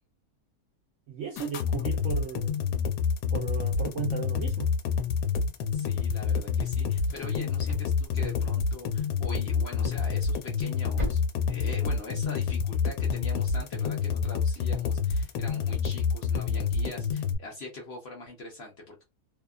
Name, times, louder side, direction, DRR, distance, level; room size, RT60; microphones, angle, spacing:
voice 1, 1.1-2.6 3.3-4.7, right 7 dB, 65° right, 0.8 m, -35 dB
sound 1, 1.4-17.4, left 6 dB, 90° left, 1.1 m, -28 dB
sound 2, 5.4-12.6, left 2 dB, 20° right, 1.0 m, -43 dB
voice 2, 5.7-11.2 11.5-19.0, left 2 dB, 55° left, 0.8 m, -42 dB
2.7 x 2.2 x 2.3 m
omnidirectional pair, 1.7 m